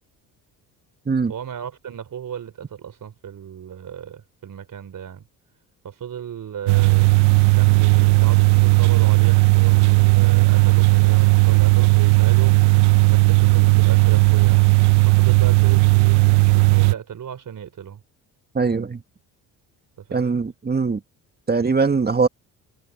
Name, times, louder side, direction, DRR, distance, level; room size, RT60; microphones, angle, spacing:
voice 1, 1.3-5.2 5.8-7.2 7.5-14.7 15.1-18.0 20.0-20.4, right 8 dB, 50° right, 3.7 m, -35 dB
sound 1, 6.7-16.9, right 30 dB, 90° right, 0.6 m, -15 dB
voice 2, 18.5-19.0 20.1-21.0 21.5-22.3, right 4 dB, 25° right, 1.9 m, -21 dB
supercardioid pair, 75°, 40 cm